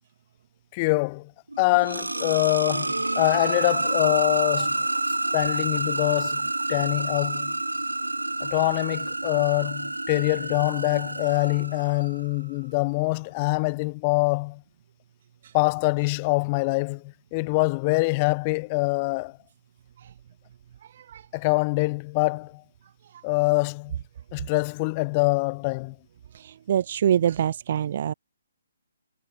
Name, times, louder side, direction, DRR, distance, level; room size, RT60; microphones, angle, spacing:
voice 1, 0.7-1.3 1.6-4.8 5.3-7.5 8.4-14.6 15.5-19.4 21.3-22.6 23.2-24.0 24.3-26.0, left 27 dB, 30° left, 1.8 m, -24 dB
sound 1, 1.5-12.3, right 2 dB, 85° right, 3.8 m, -28 dB
voice 2, 26.3-28.1, right 9 dB, 45° right, 4.9 m, -25 dB
figure-of-eight pair, 135°, 0 cm